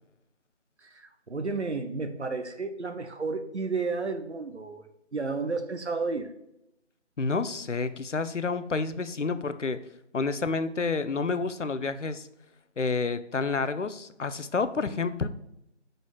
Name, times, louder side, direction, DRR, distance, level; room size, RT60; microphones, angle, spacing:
voice 1, 0.8-4.9 5.1-6.3, right 4 dB, 70° right, 7 dB, 1.0 m, -32 dB
voice 2, 7.2-9.8 10.1-12.3 12.8-15.3, left 4 dB, 85° left, 12 dB, 0.7 m, -29 dB
6.3 x 5.1 x 3.9 m, 0.83 s
figure-of-eight pair, 175°, 36 cm